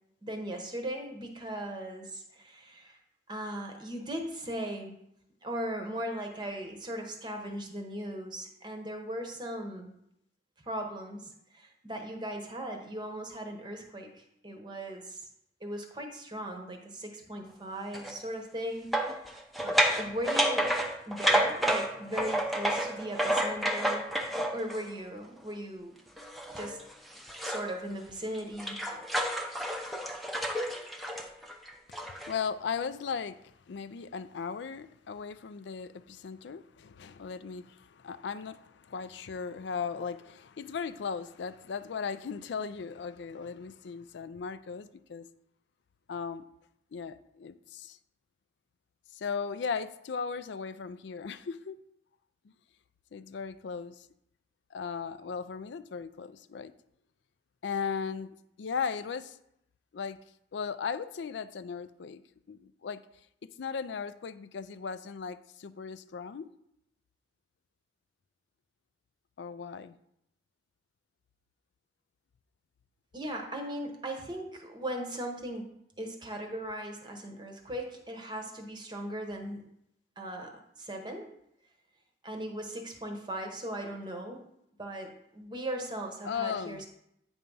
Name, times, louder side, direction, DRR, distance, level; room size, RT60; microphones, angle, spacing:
voice 1, 0.2-3.0 3.3-5.0 5.4-9.9 10.6-15.2 15.6-19.3 19.6-20.7 21.1-24.1 24.5-26.0 26.5-26.8 27.4-28.8 73.1-75.7 76.0-79.6 80.2-80.5 80.8-81.3 82.2-84.4 84.8-86.9, right 1 dB, 25° right, 3 dB, 0.8 m, -38 dB
sound 1, 17.9-18.1 18.9-24.9 26.2-27.7 28.1-32.3, right 1 dB, ahead, 0.5 m, -30 dB
voice 2, 31.9-45.3 46.1-46.4 46.9-48.0 49.1-51.8 53.1-54.1 54.7-56.7 57.6-58.3 58.6-59.4 59.9-60.2 60.5-62.2 62.5-63.0 63.6-66.5 69.4-70.0 86.2-86.8, left 6 dB, 65° left, 14 dB, 0.4 m, -37 dB
8.6 x 3.5 x 5.4 m, 0.77 s
head